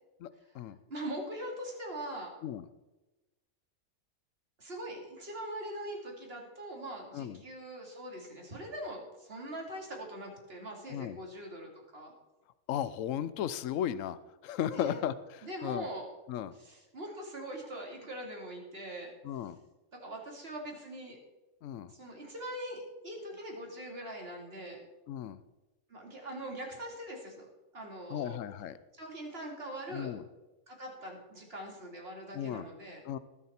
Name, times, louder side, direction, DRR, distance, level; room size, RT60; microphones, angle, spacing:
voice 1, 0.9-2.3 4.6-12.1 14.7-15.0 15.4-16.1 16.5-19.1 20.0-21.2 21.9-24.8 25.9-27.5 27.7-28.4 28.9-30.1 30.7-33.0, right 1 dB, 45° right, 0 dB, 2.8 m, -42 dB
voice 2, 12.7-14.2 14.4-15.9 16.3-16.5 19.2-19.6 21.6-21.9 25.1-25.4 28.1-28.8 29.9-30.2 32.3-32.6 33.1-33.2, left 10 dB, 70° left, 15 dB, 1.0 m, -35 dB
19.5 x 7.3 x 4.4 m, 1.1 s
omnidirectional pair, 1.5 m